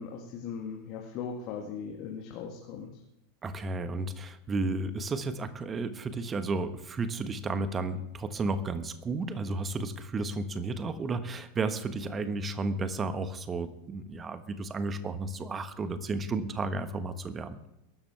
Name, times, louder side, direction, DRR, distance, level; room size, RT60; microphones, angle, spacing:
voice 1, 0.0-2.9, left 6 dB, 40° left, 1 dB, 2.0 m, -39 dB
voice 2, 3.4-17.6, right 3 dB, 20° right, 10 dB, 1.4 m, -33 dB
22.5 x 12.5 x 3.5 m, 0.85 s
figure-of-eight pair, 85°, 0 cm